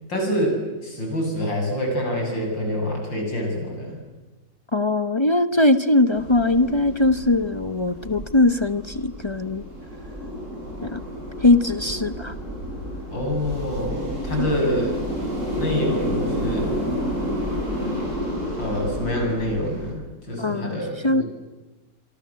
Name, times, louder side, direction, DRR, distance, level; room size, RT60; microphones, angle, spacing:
voice 1, 0.1-4.0 13.1-15.0 15.5-16.8 18.6-20.0 20.3-21.2, left 1 dB, 75° left, 2 dB, 8.7 m, -26 dB
voice 2, 4.7-9.6 10.8-11.0 11.4-12.3 14.4-14.5 20.4-21.2, left 2 dB, 40° left, 12 dB, 0.4 m, -20 dB
sound 1, 6.1-19.9, equal, 40° right, 8.3 m, -30 dB
27.0 x 25.0 x 7.6 m, 1.2 s
omnidirectional pair, 2.0 m